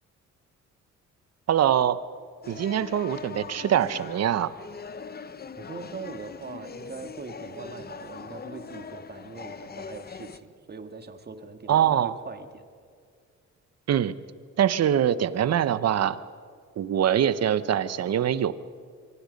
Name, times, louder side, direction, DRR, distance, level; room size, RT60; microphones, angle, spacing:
voice 1, 1.5-2.0 2.5-4.5 11.7-12.1 13.9-14.1 14.6-16.2 16.8-18.5, right 10 dB, 55° right, 15 dB, 0.9 m, -23 dB
sound 1, 2.4-10.4, left 5 dB, 30° left, 1.0 m, -41 dB
voice 2, 5.6-12.7, right 4 dB, 35° right, 8 dB, 2.0 m, -41 dB
24.5 x 24.0 x 5.4 m, 2.1 s
cardioid pair, 90°, 30 cm